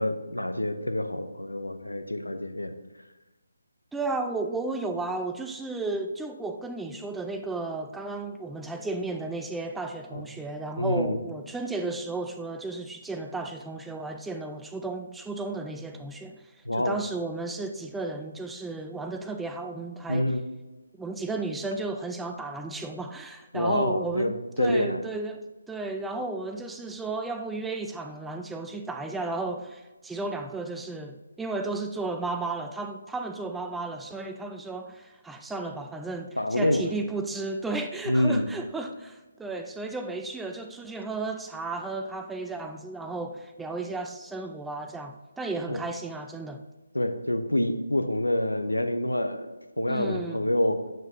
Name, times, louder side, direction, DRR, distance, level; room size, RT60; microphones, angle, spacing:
voice 1, 0.0-2.7 10.1-10.2 10.8-11.2 16.6-17.0 20.1-20.4 23.5-25.0 36.4-36.8 38.1-38.5 45.7-45.8 46.9-49.5 49.8-50.8, left 1 dB, 90° left, 8 dB, 0.8 m, -27 dB
voice 2, 3.9-20.3 21.0-46.6 49.9-50.5, right 3 dB, 5° right, 6 dB, 0.3 m, -34 dB
7.7 x 7.5 x 2.9 m, 1.2 s
figure-of-eight pair, 150°, 0 cm